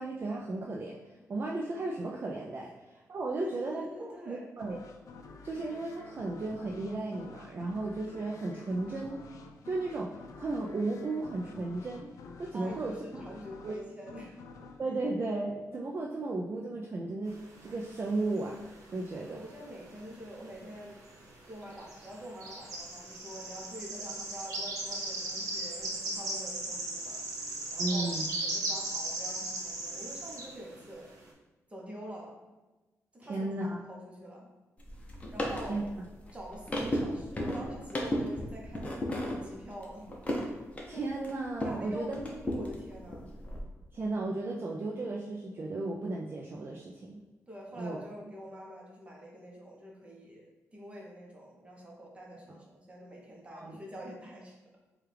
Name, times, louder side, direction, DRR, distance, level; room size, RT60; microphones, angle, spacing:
voice 1, 0.0-4.8 5.4-9.2 9.7-12.1 12.4-13.0 13.6-13.8 14.8-19.4 27.8-28.2 33.2-33.8 35.7-35.8 40.9-42.2 43.9-47.2 47.8-48.0 53.5-53.8, right 2 dB, 40° right, -1 dB, 0.4 m, -35 dB
voice 2, 3.4-4.5 12.5-14.4 19.3-21.0 21.5-27.3 27.7-28.1 28.4-31.1 31.7-32.3 33.1-33.5 33.9-34.5 35.3-35.8 36.3-40.1 41.6-43.4 47.5-54.6, equal, 20° right, -2 dB, 0.9 m, -46 dB
sound 1, 4.6-16.1, left 4 dB, 75° left, 0.4 m, -50 dB
sound 2, 17.3-19.0 19.3-20.5 20.8-21.0 21.6-30.5, right 2 dB, 80° right, 0.9 m, -36 dB
sound 3, 34.8-41.8 42.1-43.6, left 1 dB, 25° left, 0.7 m, -35 dB
4.6 x 2.4 x 3.3 m, 1.1 s
cardioid pair, 110°, 6 cm